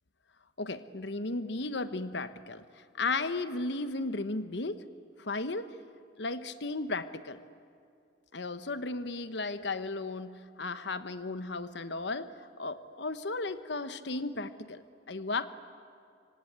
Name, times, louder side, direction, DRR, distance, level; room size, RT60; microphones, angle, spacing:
voice 1, 0.6-4.8 5.2-5.8 6.2-7.4 8.3-15.5, left 3 dB, 65° left, 12 dB, 1.1 m, -35 dB
26.0 x 25.5 x 8.7 m, 2.4 s
head